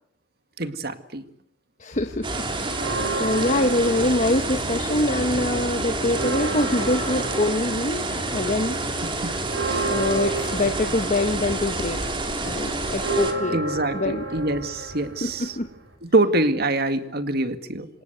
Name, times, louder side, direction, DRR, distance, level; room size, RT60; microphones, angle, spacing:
voice 1, 0.6-1.2 9.2-9.4 9.6-9.9 13.5-15.5 16.0-17.9, right 2 dB, 55° right, 9 dB, 2.1 m, -25 dB
voice 2, 1.8-2.3 3.1-8.8 9.8-13.6 13.9-14.2 15.2-15.7, left 2 dB, 40° left, 6 dB, 1.3 m, -24 dB
sound 1, 1.9-12.1, equal, 70° left, 6.7 m, -39 dB
sound 2, 2.2-13.3, right 2 dB, 25° right, 3.0 m, -28 dB
sound 3, 2.7-5.1 5.4-15.9, right 3 dB, 80° right, 6.7 m, -32 dB
27.5 x 26.0 x 8.2 m, 0.70 s
head